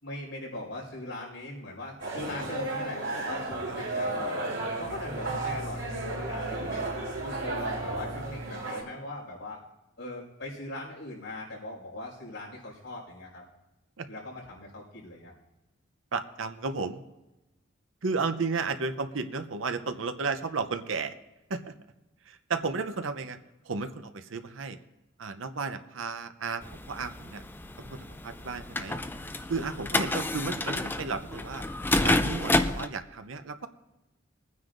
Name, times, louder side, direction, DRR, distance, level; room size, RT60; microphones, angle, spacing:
voice 1, 0.0-4.4 4.7-6.9 7.2-9.6 10.0-13.4 14.1-15.3, left 1 dB, 70° left, -4 dB, 5.1 m, -40 dB
sound 1, 2.0-8.8, right 2 dB, 65° right, 3.8 m, -33 dB
voice 2, 16.1-17.0 18.0-21.1 21.5-21.6 22.3-23.4 23.7-24.8 25.2-26.6 26.9-27.4 27.9-29.0 29.5-31.6 32.0-33.7, right 4 dB, 80° right, 9 dB, 0.7 m, -33 dB
sound 2, 26.6-32.9, left 2 dB, 10° left, 0.4 m, -30 dB
22.0 x 9.5 x 2.6 m, 1.0 s
head